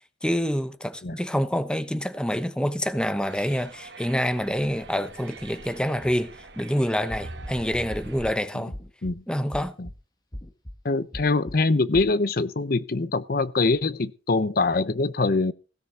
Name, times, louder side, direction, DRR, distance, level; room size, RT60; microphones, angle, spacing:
voice 1, 0.2-8.7 9.3-9.7, equal, 5° left, 1.0 m, -27 dB
sound 1, 3.2-8.3, right 2 dB, 75° right, 1.3 m, -43 dB
sound 2, 7.1-7.5 7.9-8.3 8.7-9.1 9.5-9.9 10.3-10.7 11.1-11.5 11.9-12.1, equal, 20° left, 1.6 m, -38 dB
voice 2, 10.8-15.5, left 3 dB, 55° left, 0.7 m, -24 dB
16.5 x 6.9 x 6.2 m
head